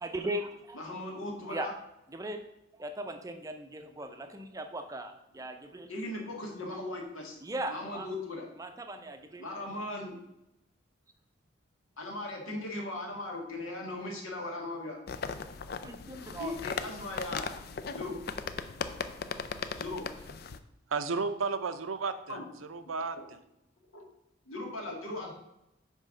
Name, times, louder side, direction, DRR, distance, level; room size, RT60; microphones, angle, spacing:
voice 1, 0.0-0.8 1.5-1.7 2.1-2.4 2.7-5.9 7.4-8.1 8.6-9.5 15.8-16.5, right 1 dB, 15° right, 6 dB, 0.5 m, -38 dB
voice 2, 0.8-1.7 5.9-7.4 7.7-8.4 9.4-10.2 12.0-15.0 16.4-17.5 17.9-18.1 19.7-20.0 20.3-20.4 22.3-22.4 23.9-24.1 24.5-25.3, left 2 dB, 90° left, 0 dB, 1.9 m, -38 dB
sound 1, 15.1-20.6, left 5 dB, 50° left, 0.4 m, -38 dB
voice 3, 20.9-23.4, right 4 dB, 85° right, 10 dB, 0.6 m, -33 dB
5.4 x 4.6 x 6.3 m, 0.86 s
head